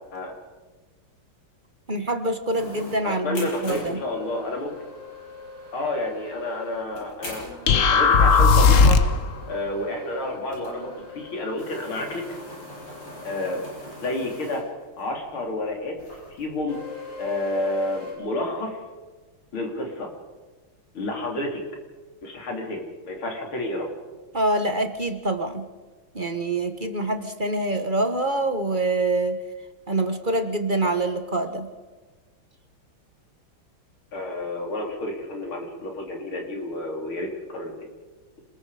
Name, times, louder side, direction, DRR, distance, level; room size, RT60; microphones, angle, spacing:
voice 1, 1.9-4.0 24.3-25.7 26.1-29.4 29.9-31.7, right 2 dB, 30° right, 8 dB, 1.2 m, -25 dB
sound 1, 2.5-15.1 15.4-15.5 16.0-18.1, left 2 dB, 65° left, 8.0 m, -41 dB
voice 2, 3.0-4.7 5.7-7.4 7.9-9.0 9.5-12.3 13.2-13.7 14.0-14.6 15.0-16.0 16.4-16.8 17.2-18.8 19.5-20.1 20.9-21.6 22.2-23.9 34.1-37.7, left 2 dB, 90° left, 1 dB, 4.3 m, -30 dB
sound 2, 7.7-9.2, left 4 dB, 45° left, 1.2 m, -16 dB
26.5 x 21.0 x 5.0 m, 1.3 s
omnidirectional pair, 2.2 m